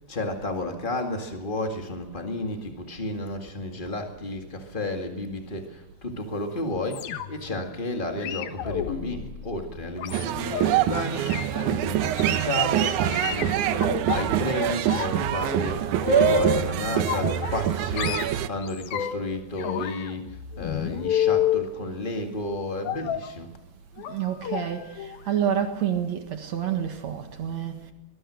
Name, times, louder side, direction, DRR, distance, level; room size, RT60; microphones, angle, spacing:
voice 1, 0.1-23.5, left 2 dB, 90° left, 0.4 m, -32 dB
sound 1, 6.9-7.5 8.2-10.7 11.1-11.5 12.2-12.5 13.1-14.2 14.6-15.2 15.5-16.7 17.1-17.7 18.0-19.3 19.6-21.7 22.8-23.3 24.0-24.2 24.4-24.6 25.0-25.2 25.5-25.6, left 8 dB, 70° left, 2.9 m, -29 dB
sound 2, 10.1-18.5, right 11 dB, 75° right, 1.8 m, -25 dB
voice 2, 24.1-27.9, right 9 dB, 55° right, 2.3 m, -28 dB
23.5 x 20.5 x 6.4 m
omnidirectional pair, 4.8 m